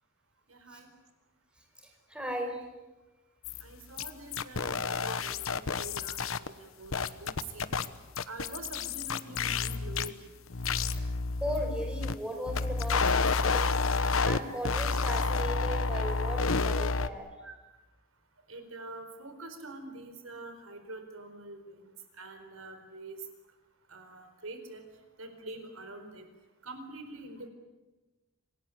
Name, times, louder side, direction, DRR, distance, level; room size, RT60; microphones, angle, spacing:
voice 1, 0.5-0.9 3.6-7.7 8.3-10.3 15.7-16.2 17.4-17.6 18.5-21.8 22.1-23.2 23.9-24.8 25.2-26.3 26.6-27.5, right 2 dB, 80° right, 7 dB, 4.4 m, -45 dB
voice 2, 1.8-2.7 10.9-11.1 11.4-13.9 14.2-17.3, equal, 5° right, 3 dB, 5.0 m, -37 dB
sound 1, 3.4-3.6 4.0-6.5 6.9-7.9 8.1-10.1 10.5-12.1 12.5-14.4 14.6-17.1, left 4 dB, 75° left, 1.1 m, -30 dB
27.0 x 20.0 x 9.8 m, 1.1 s
head